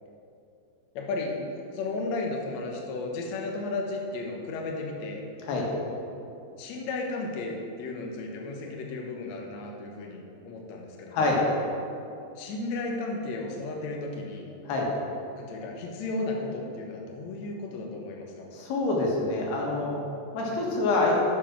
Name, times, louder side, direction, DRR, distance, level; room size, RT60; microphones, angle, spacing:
voice 1, 0.9-1.4 1.7-5.2 6.6-11.4 12.4-14.5 15.4-18.5 20.4-20.6, left 3 dB, 65° left, 0 dB, 1.8 m, -34 dB
voice 2, 18.5-20.0 20.3-21.2, left 2 dB, 85° left, -2 dB, 3.7 m, -26 dB
9.3 x 7.4 x 6.0 m, 2.6 s
omnidirectional pair, 4.6 m